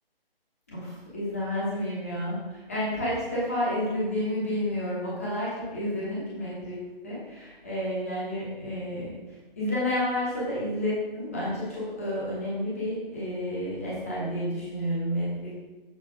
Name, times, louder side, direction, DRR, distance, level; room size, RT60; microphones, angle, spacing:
voice 1, 0.7-6.8 7.0-15.5, left 1 dB, 15° left, -8 dB, 1.2 m, -30 dB
7.4 x 4.9 x 4.9 m, 1.1 s
hypercardioid pair, 180°, 30 cm